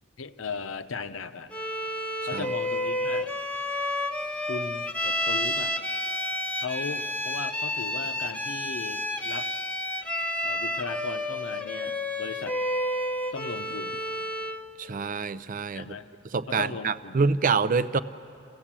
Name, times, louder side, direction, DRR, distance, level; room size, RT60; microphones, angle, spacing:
voice 1, 0.2-1.5 2.2-3.3 4.5-5.9 6.6-9.5 10.4-12.6 13.3-14.0 15.7-16.1 16.5-17.2, left 4 dB, 70° left, 10 dB, 0.8 m, -37 dB
Bowed string instrument, 1.5-14.7, left 1 dB, 5° left, 0.8 m, -30 dB
voice 2, 14.8-16.0 16.3-18.0, right 5 dB, 40° right, 15 dB, 0.5 m, -26 dB
29.0 x 16.0 x 7.4 m, 2.6 s
head